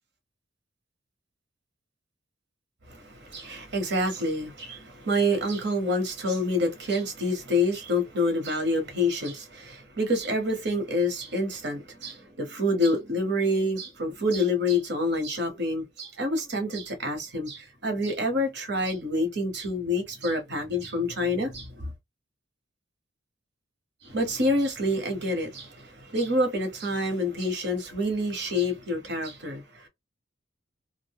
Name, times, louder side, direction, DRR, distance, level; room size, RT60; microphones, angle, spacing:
voice 1, 2.9-21.9 24.0-29.9, left 1 dB, 60° right, 1.0 m, -27 dB
2.5 x 2.1 x 3.4 m
head